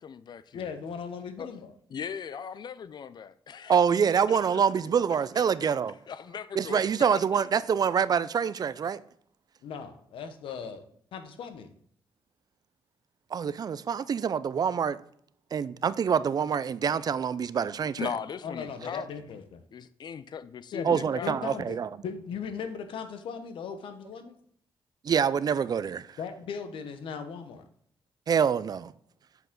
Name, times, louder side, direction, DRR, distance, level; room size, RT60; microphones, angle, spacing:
voice 1, 0.0-0.7 1.4-1.5 1.9-3.8 4.3-4.5 5.6-5.7 6.1-7.2 18.0-19.1 19.7-21.4, left 7 dB, 55° left, 0.5 m, -38 dB
voice 2, 0.5-1.7 9.6-10.8 11.1-11.7 18.4-19.6 20.7-24.4 26.2-27.6, left 6 dB, 80° left, 0.9 m, -38 dB
voice 3, 3.7-5.9 6.6-9.0 13.3-15.0 15.5-18.1 20.8-21.9 25.0-26.1 28.3-28.9, right 7 dB, 45° right, 0.4 m, -26 dB
8.0 x 4.8 x 3.8 m
cardioid pair, 75°, 9 cm